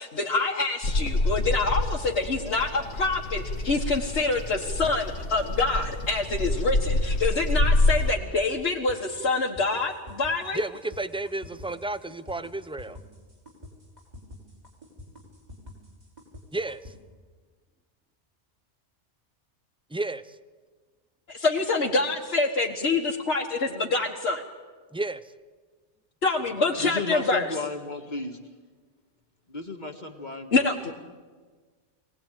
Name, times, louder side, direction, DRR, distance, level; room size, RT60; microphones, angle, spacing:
voice 1, 0.0-10.6 21.3-24.4 26.2-27.5 30.5-30.9, left 3 dB, 70° left, 1.9 m, -26 dB
Bird vocalization bird call bird song, 0.8-8.1, left 2 dB, 90° left, 1.9 m, -27 dB
sound 1, 8.9-16.9, left 1 dB, 35° right, 5.6 m, -46 dB
voice 2, 10.5-13.0 16.5-16.9 19.9-20.4 24.9-25.2, right 2 dB, 5° right, 0.4 m, -32 dB
voice 3, 26.8-28.4 29.5-30.7, left 2 dB, 40° left, 1.8 m, -33 dB
24.0 x 18.5 x 9.1 m
omnidirectional pair, 1.2 m